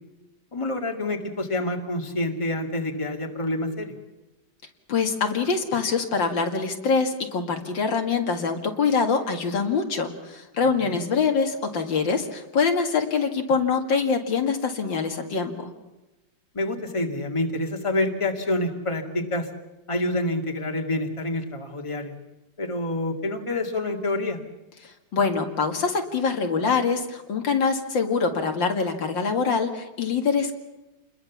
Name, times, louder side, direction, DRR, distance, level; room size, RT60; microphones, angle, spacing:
voice 1, 0.5-3.9 10.9-11.0 16.5-19.5 19.9-22.1 22.6-24.4, left 1 dB, 15° left, 3 dB, 2.2 m, -27 dB
voice 2, 4.9-15.7 24.8-30.5, left 5 dB, 75° left, 4 dB, 2.7 m, -24 dB
29.0 x 21.5 x 7.2 m, 1.0 s
omnidirectional pair, 2.0 m